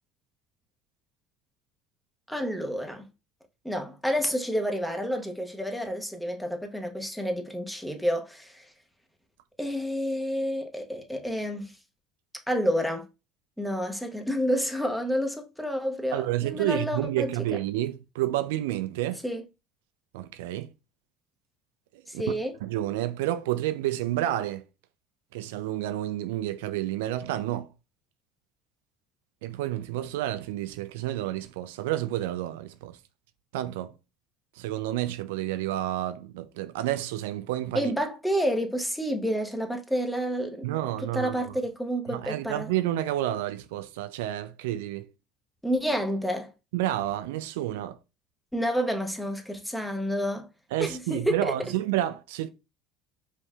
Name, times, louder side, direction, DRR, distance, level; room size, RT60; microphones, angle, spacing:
voice 1, 2.3-3.0 3.6-8.6 9.6-11.7 12.5-13.0 13.6-17.3 19.2-19.4 22.1-22.6 37.7-40.7 41.0-42.7 45.6-46.5 48.5-50.5 50.8-51.5, equal, ahead, 1.1 m, -29 dB
voice 2, 16.1-19.2 20.1-20.7 22.1-22.2 22.6-24.6 25.3-27.7 29.4-33.0 33.5-33.9 34.6-37.9 40.6-41.6 42.1-45.1 46.7-48.0 50.7-52.5, right 14 dB, 80° right, 0.3 m, -30 dB
5.2 x 3.3 x 2.3 m
hypercardioid pair, 70°, 0 cm